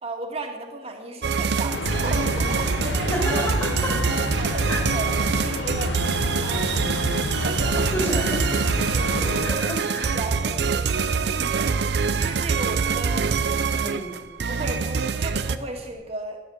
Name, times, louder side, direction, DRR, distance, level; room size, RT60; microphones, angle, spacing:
voice 1, 0.0-3.5 4.0-6.9 7.4-8.2 8.9-9.7 10.1-13.4 14.5-16.4, right 2 dB, 35° right, 2 dB, 1.9 m, -35 dB
sound 1, 1.2-15.6, right 5 dB, 65° right, 0.5 m, -24 dB
Train, 1.7-9.5, left 3 dB, 90° left, 0.7 m, -30 dB
voice 2, 3.1-4.1 4.7-4.8 7.9-8.5 9.2-10.2 13.7-14.3, equal, 20° left, -1 dB, 2.5 m, -30 dB
sound 2, 5.5-16.0, equal, 50° left, 4.5 m, -45 dB
12.0 x 9.7 x 6.3 m, 1.1 s
head